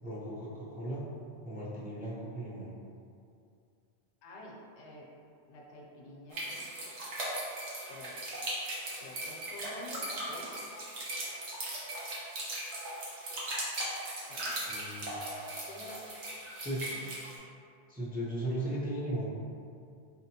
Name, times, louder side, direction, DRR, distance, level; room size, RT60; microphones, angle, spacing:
voice 1, 0.0-1.0 1.4-2.7 14.7-15.2 16.6-16.9 17.9-19.3, right 1 dB, 10° right, -8 dB, 0.5 m, -36 dB
voice 2, 4.2-5.1 5.5-6.7 7.9-8.1 9.0-10.6 14.2-14.6 15.7-16.1, left 1 dB, 85° left, -2 dB, 0.9 m, -48 dB
sound 1, 6.3-17.4, right 1 dB, 85° right, 1.2 m, -38 dB
4.5 x 2.8 x 2.8 m, 2.4 s
omnidirectional pair, 1.1 m